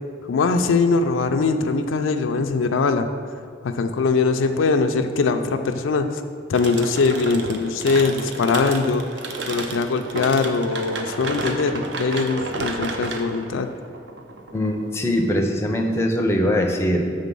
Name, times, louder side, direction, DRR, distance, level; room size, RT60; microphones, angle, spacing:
voice 1, 0.3-3.1 3.6-6.2 6.5-9.1 9.5-13.7, left 4 dB, 85° left, 7 dB, 0.4 m, -21 dB
sound 1, 6.6-15.2, right 2 dB, 60° right, 0.6 m, -31 dB
voice 2, 14.5-17.0, equal, 15° left, 2 dB, 0.5 m, -21 dB
7.1 x 3.8 x 5.4 m, 2.3 s
head